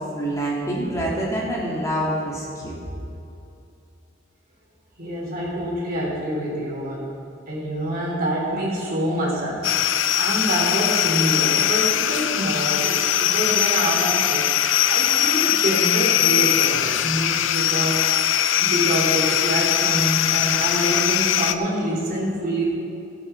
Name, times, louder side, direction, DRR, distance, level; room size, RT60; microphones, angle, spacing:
voice 1, 0.0-2.7, right 1 dB, 15° left, -5 dB, 2.3 m, -26 dB
voice 2, 5.0-7.1 7.5-18.0 18.3-22.7, equal, 50° right, -4 dB, 3.2 m, -26 dB
sound 1, 9.6-21.5, left 10 dB, 85° left, 0.5 m, -21 dB
17.0 x 8.4 x 4.5 m, 2.7 s
head